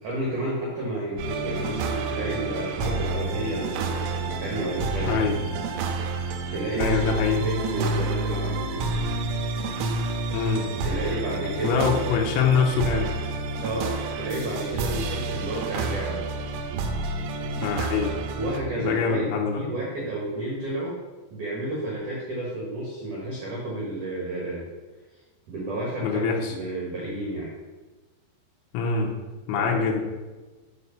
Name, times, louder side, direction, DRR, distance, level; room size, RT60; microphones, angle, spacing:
voice 1, 0.0-5.3 6.5-9.0 10.8-11.9 13.6-16.2 18.3-21.0 21.3-24.7 25.5-27.5 29.5-29.9, right 1 dB, 65° right, -5 dB, 2.0 m, -31 dB
sound 1, 1.2-18.6, right 3 dB, 90° right, 3.3 m, -29 dB
sound 2, 2.0-8.1, left 1 dB, 50° left, 2.4 m, -46 dB
voice 2, 5.0-5.4 6.8-7.5 10.3-10.7 11.6-13.1 17.6-18.1 18.8-19.6 26.0-26.5 28.7-29.1 29.5-30.0, left 5 dB, 80° left, 0 dB, 3.0 m, -24 dB
8.2 x 4.5 x 5.8 m, 1.2 s
omnidirectional pair, 5.8 m